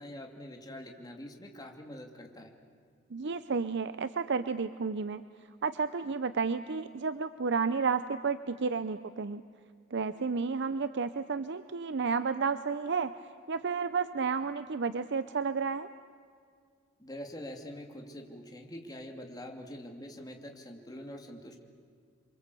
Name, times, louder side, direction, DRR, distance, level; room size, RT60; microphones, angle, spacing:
voice 1, 0.0-2.5 17.0-21.6, left 1 dB, 20° left, 2 dB, 2.7 m, -45 dB
voice 2, 3.1-5.2 5.6-9.4 9.9-13.1 13.5-15.9, right 5 dB, 60° right, 12 dB, 0.7 m, -31 dB
28.0 x 24.5 x 8.4 m, 2.1 s
head